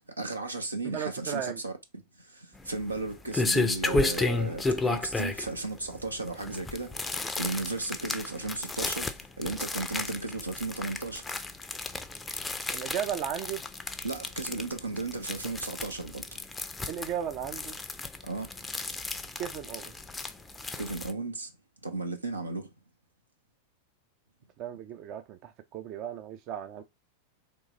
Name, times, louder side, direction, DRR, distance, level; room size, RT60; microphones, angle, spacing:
voice 1, 0.2-1.7 2.2-7.0 7.4-11.4 14.0-16.4 18.2-18.5 18.7-18.8 20.8-21.5 21.8-22.7, right 3 dB, 80° right, 0.9 m, -35 dB
voice 2, 0.8-1.6 12.7-13.6 16.8-17.8 19.4-19.9 24.6-26.8, right 9 dB, 40° right, 0.5 m, -35 dB
sound 1, 2.6-21.1, left 3 dB, 10° left, 0.5 m, -33 dB
3.8 x 3.2 x 3.9 m
figure-of-eight pair, 90°, 0 cm